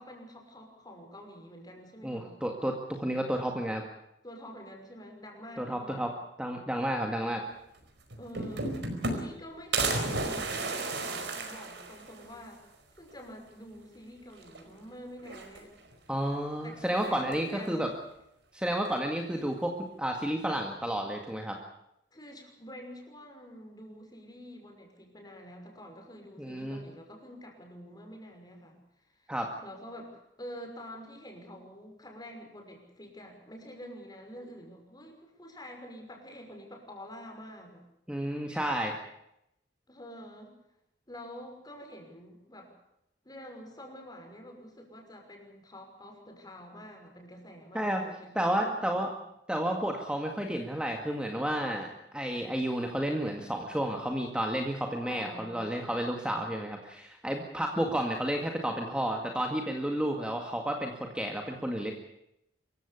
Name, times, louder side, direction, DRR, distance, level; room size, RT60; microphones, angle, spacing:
voice 1, 0.0-2.3 4.2-6.1 8.2-12.6 12.9-15.7 16.6-17.9 22.1-29.3 29.6-37.8 39.9-40.5 41.1-42.7 43.2-49.2 55.0-56.0, equal, 25° left, 3 dB, 5.9 m, -47 dB
voice 2, 2.0-3.8 5.6-6.1 6.4-7.4 16.1-17.9 18.5-21.6 26.4-26.8 29.3-29.5 38.1-38.9 47.7-48.0 48.4-49.1 49.5-61.9, right 1 dB, 5° right, 2 dB, 2.0 m, -31 dB
sound 1, 7.8-7.9 8.1-9.4 9.7-12.3 12.7-12.8 13.1-13.2 14.4-14.8 15.2-15.9 17.0-17.5, right 3 dB, 70° right, 4.7 m, -33 dB
25.5 x 15.0 x 8.5 m, 0.83 s
head